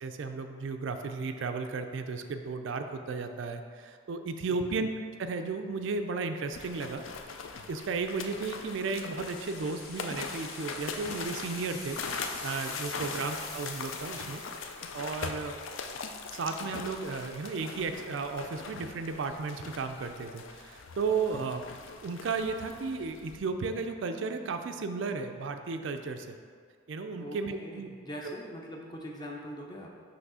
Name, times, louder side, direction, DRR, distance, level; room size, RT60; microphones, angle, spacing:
voice 1, 0.0-4.9 5.2-7.0 7.7-14.4 14.9-15.6 16.3-21.6 22.0-26.3 26.9-27.9 28.2-28.3, right 4 dB, 65° right, 7 dB, 0.4 m, -34 dB
sound 1, 6.5-23.4, left 4 dB, 70° left, 0.4 m, -41 dB
sound 2, 9.2-14.9, left 3 dB, 85° left, 0.9 m, -45 dB
voice 2, 27.2-30.0, equal, 20° left, 0 dB, 0.6 m, -43 dB
5.9 x 3.1 x 5.5 m, 2.1 s
head